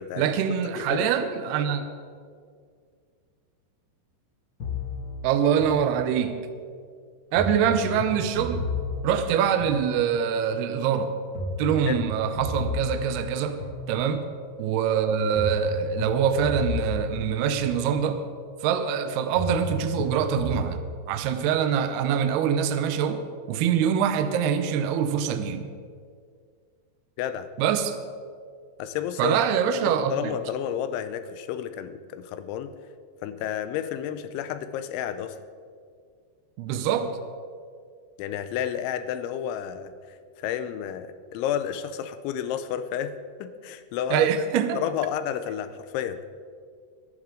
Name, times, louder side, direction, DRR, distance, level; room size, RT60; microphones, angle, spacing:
voice 1, 0.2-1.8 5.2-6.5 7.3-8.7 9.0-11.1 11.6-13.6 13.9-14.3 14.6-18.2 18.6-20.8 21.1-23.2 23.5-25.7 27.6-27.9 29.2-30.3 36.6-37.2 44.1-44.8, right 8 dB, 75° right, 8 dB, 2.5 m, -24 dB
voice 2, 0.8-1.1 11.9-12.0 27.2-27.5 28.8-29.4 29.8-32.7 33.2-35.4 38.2-39.9 40.4-44.3 44.7-46.2, left 10 dB, 85° left, 11 dB, 3.1 m, -31 dB
sound 1, 4.6-6.5 7.3-10.4 11.3-14.4 15.3-18.4 19.3-20.7, left 2 dB, 45° left, 1.7 m, -33 dB
22.5 x 11.0 x 3.8 m, 2.1 s
omnidirectional pair, 5.3 m